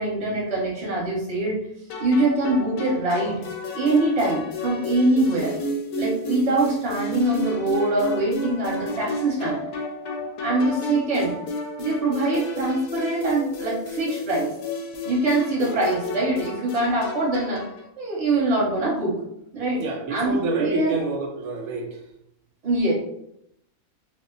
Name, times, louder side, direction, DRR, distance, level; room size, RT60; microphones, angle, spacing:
voice 1, 0.0-1.6 2.0-3.4 3.7-5.5 6.0-9.6 10.2-11.3 11.8-14.5 15.0-17.6 18.0-19.2 19.5-19.8 20.1-20.9 22.6-22.9, right 2 dB, 30° right, -4 dB, 0.9 m, -23 dB
sound 1, 1.9-17.8, equal, 70° left, 0.9 m, -32 dB
voice 2, 19.8-22.0, right 3 dB, 85° right, 2 dB, 1.1 m, -28 dB
2.8 x 2.1 x 3.7 m, 0.79 s
omnidirectional pair, 1.5 m